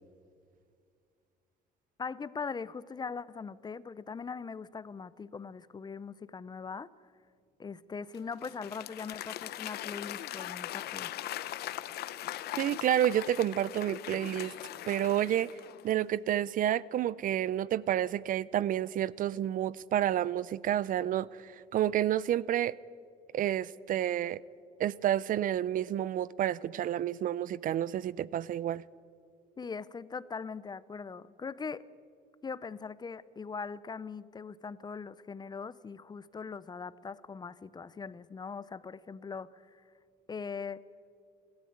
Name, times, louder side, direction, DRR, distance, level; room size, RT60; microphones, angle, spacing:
voice 1, 2.0-6.9 7.6-11.1 29.6-31.9 32.4-39.8 40.3-40.8, left 5 dB, 25° left, 0.6 m, -41 dB
Applause / Crowd, 8.1-15.9, left 13 dB, 70° left, 0.8 m, -40 dB
voice 2, 12.6-14.5 14.9-15.5 15.8-22.7 23.3-24.4 24.8-28.8, right 11 dB, 55° right, 0.5 m, -30 dB
28.0 x 13.0 x 8.7 m
cardioid pair, 110°, 17 cm